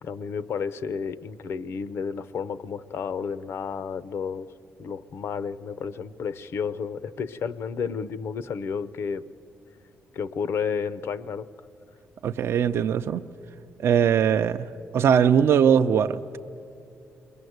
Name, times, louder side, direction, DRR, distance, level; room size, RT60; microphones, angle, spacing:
voice 1, 0.0-4.5 4.8-9.2 10.1-11.5, left 6 dB, 65° left, 0.7 m, -31 dB
voice 2, 12.2-13.2 13.8-14.7 14.9-16.4, right 8 dB, 65° right, 0.5 m, -21 dB
29.0 x 22.0 x 7.9 m
cardioid pair, 145°, 5 cm